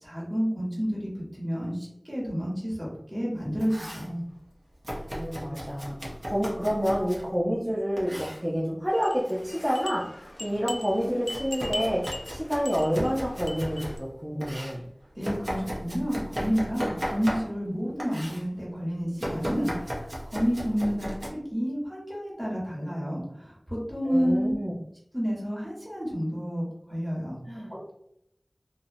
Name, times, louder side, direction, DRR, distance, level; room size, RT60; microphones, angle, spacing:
voice 1, 0.0-4.2 15.1-19.9 20.3-24.6 25.1-27.4 27.7-27.9, equal, 25° right, -6 dB, 1.2 m, -30 dB
Domestic sounds home sounds, 3.4-4.1 4.8-7.3 8.0-8.4 9.2-9.9 10.3-14.0 14.4-17.7 18.0-18.4 19.2-21.3, equal, 55° right, 0.6 m, -36 dB
voice 2, 5.1-6.0 6.3-12.0 12.3-14.8 24.1-24.7 27.5-27.7, equal, 5° right, -6 dB, 0.5 m, -28 dB
sound 1, 8.9-14.0, left 1 dB, 55° left, 0.4 m, -40 dB
2.6 x 2.0 x 2.6 m, 0.74 s
wide cardioid pair, 40°, 0 cm